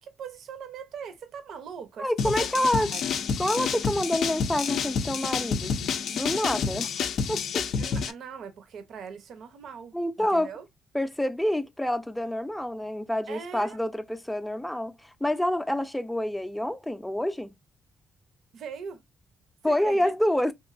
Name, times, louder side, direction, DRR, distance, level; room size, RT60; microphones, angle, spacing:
voice 1, 0.0-2.1 2.9-3.0 7.8-10.6 13.3-13.8 18.5-19.0 19.6-20.1, right 6 dB, 70° right, 0.6 m, -41 dB
voice 2, 2.0-2.9 3.4-5.7 6.1-7.6 9.9-10.5 10.9-17.5 19.6-20.5, left 1 dB, 5° left, 0.4 m, -27 dB
sound 1, 2.2-8.1, left 6 dB, 70° left, 0.4 m, -29 dB
2.9 x 2.5 x 2.4 m
cardioid pair, 90°, 0 cm